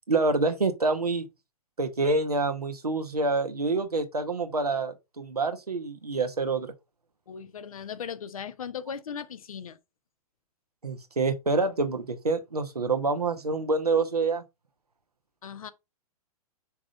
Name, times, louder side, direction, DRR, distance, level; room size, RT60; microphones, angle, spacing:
voice 1, 0.1-1.2 1.8-6.7 10.8-14.4, right 3 dB, 90° right, 1.0 m, -27 dB
voice 2, 7.3-9.8 15.4-15.7, left 7 dB, 65° left, 1.0 m, -38 dB
5.9 x 3.7 x 4.9 m
figure-of-eight pair, 110°, 19 cm